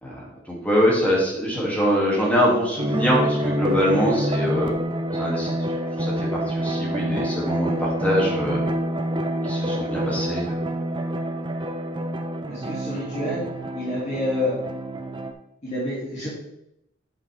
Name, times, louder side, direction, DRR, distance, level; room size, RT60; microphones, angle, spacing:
voice 1, 0.0-4.7 5.1-5.5 6.0-8.6 9.4-10.6, equal, 10° left, -4 dB, 2.7 m, -23 dB
sound 1, 2.8-15.3, right 1 dB, 25° right, 0.7 m, -27 dB
voice 2, 12.5-13.5 13.7-14.5 15.6-16.3, left 1 dB, 35° left, -9 dB, 2.9 m, -28 dB
8.3 x 7.8 x 3.6 m, 0.80 s
head